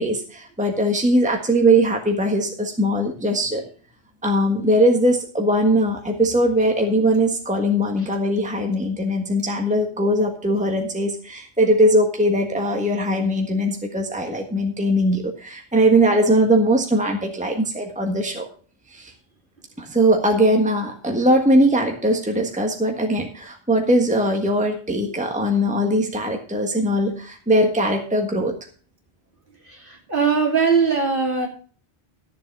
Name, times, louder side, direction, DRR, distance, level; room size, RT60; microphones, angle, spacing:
voice 1, 0.0-3.6 4.2-18.5 18.9-19.1 19.8-28.5, right 1 dB, 5° right, 2 dB, 1.5 m, -20 dB
voice 2, 29.6-31.5, right 5 dB, 50° right, 0 dB, 3.2 m, -21 dB
13.5 x 7.2 x 5.4 m, 0.41 s
omnidirectional pair, 1.1 m